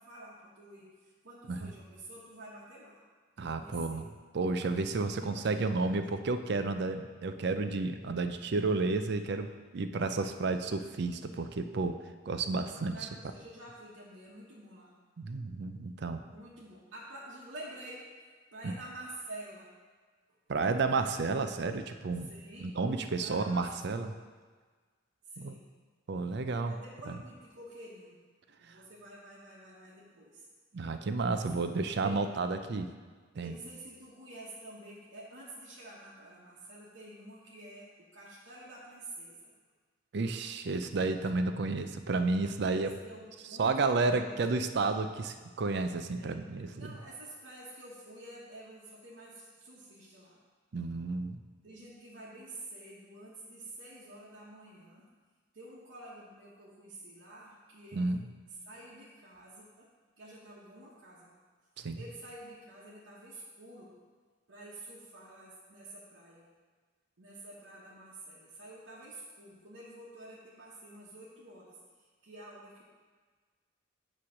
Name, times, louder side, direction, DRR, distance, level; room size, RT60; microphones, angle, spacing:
voice 1, 0.0-3.0 3.4-4.0 5.2-6.0 12.7-14.9 16.2-18.1 18.5-19.7 20.3-20.4 22.3-22.7 23.2-23.9 25.3-25.7 26.7-28.2 28.5-30.4 31.5-32.4 33.4-39.5 42.6-44.5 46.2-46.4 46.7-50.4 51.6-55.1 55.5-58.1 58.6-59.9 60.2-61.4 61.9-64.0 64.5-66.5 67.2-72.8, right 1 dB, 80° right, -8 dB, 1.2 m, -49 dB
voice 2, 3.4-4.0 4.3-12.0 12.3-13.1 15.2-16.2 18.6-18.7 20.5-22.3 22.6-24.1 25.4-25.5 26.1-26.7 30.7-32.9 33.4-33.5 40.1-42.9 43.6-46.9 50.7-51.4 57.9-58.2 61.8-62.0, right 3 dB, 60° right, 8 dB, 0.5 m, -31 dB
8.5 x 3.2 x 6.3 m, 1.5 s
head